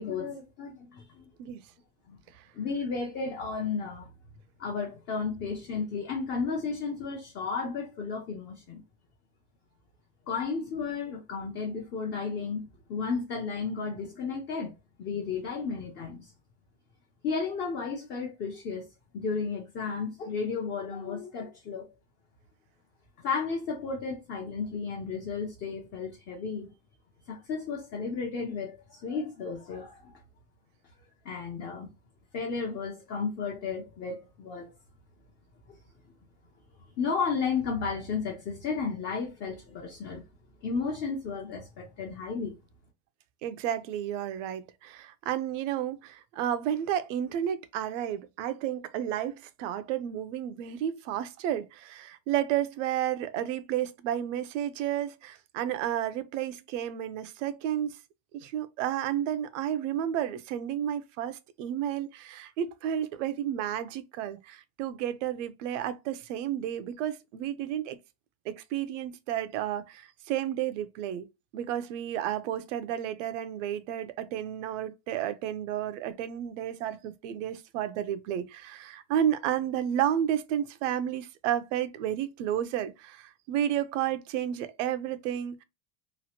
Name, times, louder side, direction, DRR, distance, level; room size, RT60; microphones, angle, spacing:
voice 1, 0.0-1.3 2.1-2.2 2.5-4.1 4.6-8.8 10.3-14.7 15.0-16.3 17.2-18.9 19.1-21.9 23.2-26.7 27.3-30.2 31.2-31.9 32.3-34.7 37.0-40.2 40.6-42.6, left 5 dB, 30° left, 0.6 m, -33 dB
voice 2, 43.4-58.0 58.3-68.0 68.4-71.3 71.5-85.6, right 10 dB, 85° right, 0.6 m, -32 dB
3.0 x 2.5 x 2.8 m
cardioid pair, 160°, 36 cm